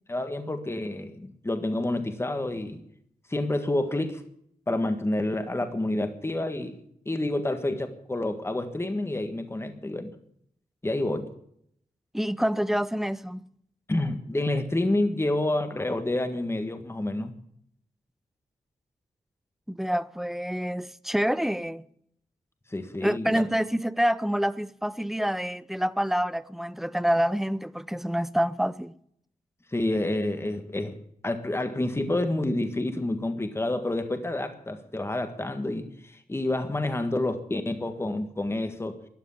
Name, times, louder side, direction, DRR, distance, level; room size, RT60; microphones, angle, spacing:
voice 1, 0.1-2.8 3.3-4.2 4.7-6.8 7.0-10.1 10.8-11.3 13.9-17.3 22.7-23.4 29.7-31.0 31.2-39.0, left 1 dB, 15° left, 1.6 m, -28 dB
voice 2, 12.1-13.5 19.7-21.8 23.0-28.9, equal, ahead, 0.6 m, -27 dB
13.0 x 11.5 x 9.7 m
wide cardioid pair, 120°, 15 cm